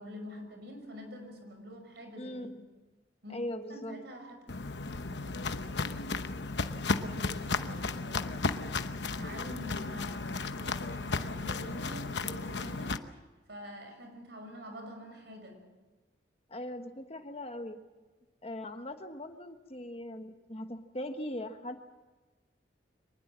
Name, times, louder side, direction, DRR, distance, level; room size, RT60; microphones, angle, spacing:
voice 1, 0.0-2.6 3.2-3.4 3.7-4.5 4.8-5.8 6.9-8.4 9.0-13.1 13.5-15.6, equal, 65° right, 5 dB, 5.9 m, -47 dB
voice 2, 2.2-2.6 3.3-4.0 16.5-17.8 18.4-21.9, left 1 dB, 35° left, 7 dB, 1.2 m, -40 dB
Walk footsteps, 4.5-13.0, left 3 dB, 65° left, 1.0 m, -34 dB
24.5 x 20.0 x 7.5 m, 1.2 s
head